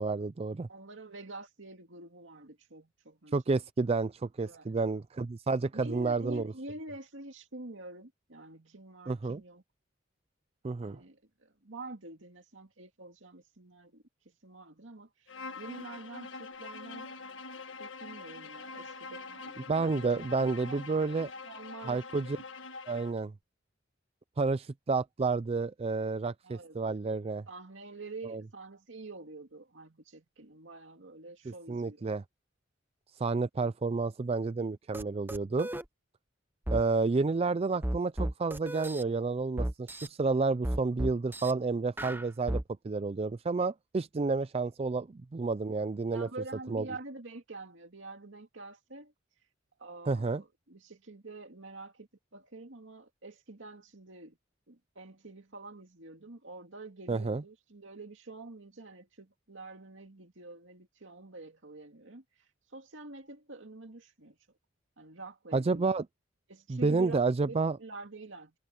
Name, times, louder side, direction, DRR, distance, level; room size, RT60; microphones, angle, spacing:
voice 1, 0.0-0.7 3.3-6.5 9.1-9.4 10.6-11.0 19.7-21.3 21.9-22.4 22.9-23.3 24.4-27.4 28.3-28.4 31.5-32.2 33.2-35.7 36.7-46.3 46.7-46.9 50.1-50.4 57.1-57.4 65.5-66.1 66.7-67.8, right 3 dB, 30° right, 0.4 m, -30 dB
voice 2, 0.7-3.4 4.5-4.7 5.7-9.6 10.8-14.0 14.4-17.1 17.8-20.2 20.6-21.1 21.4-22.1 23.1-23.2 26.4-26.8 27.5-32.1 46.1-49.1 49.8-54.4 54.7-62.2 62.7-64.4 65.0-65.9 66.5-68.5, right 2 dB, 80° right, 2.3 m, -47 dB
Bowed string instrument, 15.3-23.2, left 4 dB, 80° left, 1.6 m, -45 dB
sound 1, 34.9-35.0 35.3-35.8 36.7-36.8 37.8-39.0 39.6-40.1 40.6-41.5 42.0-42.6, right 1 dB, 10° right, 0.8 m, -33 dB
head